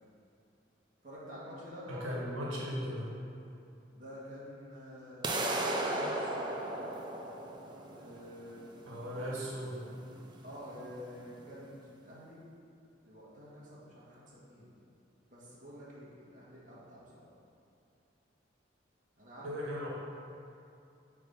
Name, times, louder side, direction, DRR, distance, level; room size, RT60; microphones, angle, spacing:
voice 1, 1.0-2.3 3.9-7.0 7.9-9.3 10.4-12.4 13.0-14.7 15.3-17.3 19.2-19.7, equal, 40° right, -8 dB, 1.6 m, -48 dB
voice 2, 1.9-3.1 8.8-9.8 19.4-19.9, equal, 90° right, -5 dB, 1.5 m, -37 dB
sound 1, 5.2-11.2, right 1 dB, 20° right, 0.5 m, -36 dB
8.0 x 3.5 x 5.5 m, 2.6 s
head